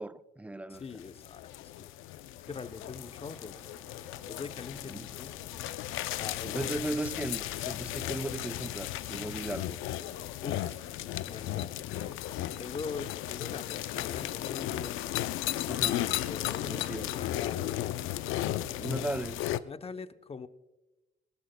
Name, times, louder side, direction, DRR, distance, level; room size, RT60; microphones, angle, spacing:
voice 1, 0.0-0.8 4.9-5.1 6.4-9.8 15.6-16.1 16.7-17.1 18.8-19.4, right 1 dB, 5° right, 0.5 m, -37 dB
sound 1, 0.7-19.6, left 14 dB, 90° left, 0.5 m, -35 dB
voice 2, 0.7-1.9 2.4-3.6 4.3-5.4 5.8-6.8 10.4-10.8 11.2-12.1 12.6-15.1 15.9-17.8 19.6-20.5, left 5 dB, 30° left, 0.7 m, -43 dB
sound 2, 2.5-13.7, equal, 10° left, 3.0 m, -58 dB
19.5 x 18.5 x 2.2 m
cardioid pair, 90°, 20 cm